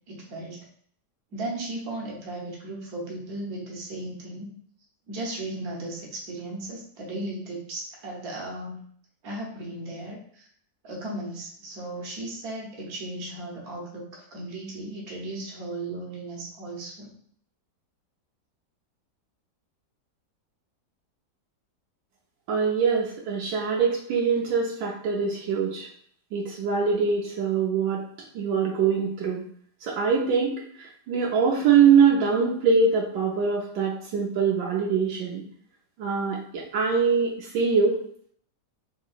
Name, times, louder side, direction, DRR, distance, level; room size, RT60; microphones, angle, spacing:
voice 1, 0.1-0.6 1.3-4.5 5.1-8.8 9.2-10.5 10.8-17.1, right 2 dB, 60° right, -3 dB, 1.4 m, -36 dB
voice 2, 22.5-25.9 26.3-28.0 28.3-29.4 29.8-35.4 36.0-37.9, right 5 dB, 80° right, -4 dB, 1.3 m, -23 dB
3.6 x 2.8 x 2.4 m, 0.62 s
omnidirectional pair, 1.9 m